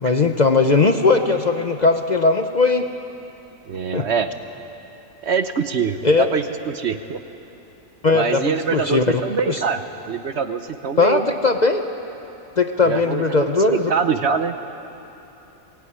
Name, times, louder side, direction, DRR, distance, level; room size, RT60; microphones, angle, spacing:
voice 1, 0.0-2.9 3.9-4.1 6.0-6.3 8.0-9.6 11.0-11.8 12.6-13.9, left 3 dB, 40° left, 6 dB, 0.8 m, -18 dB
voice 2, 3.7-4.3 5.2-7.2 8.1-9.8 10.1-11.3 12.8-13.2 13.7-14.5, right 6 dB, 55° right, 9 dB, 1.0 m, -24 dB
22.0 x 17.0 x 9.6 m, 3.0 s
omnidirectional pair, 1.4 m